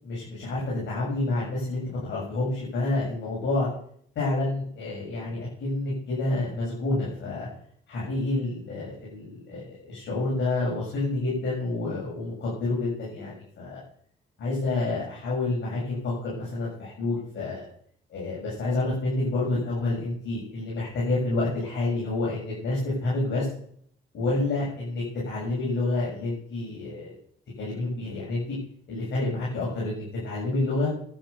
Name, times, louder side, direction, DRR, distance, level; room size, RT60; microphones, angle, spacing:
voice 1, 0.0-3.7 4.2-7.5 7.9-13.8 14.4-17.7 18.1-23.5 24.1-27.1 27.6-28.6 28.9-30.9, left 2 dB, 65° left, -5 dB, 7.4 m, -28 dB
12.0 x 10.0 x 6.9 m, 0.62 s
cardioid pair, 90°, 20 cm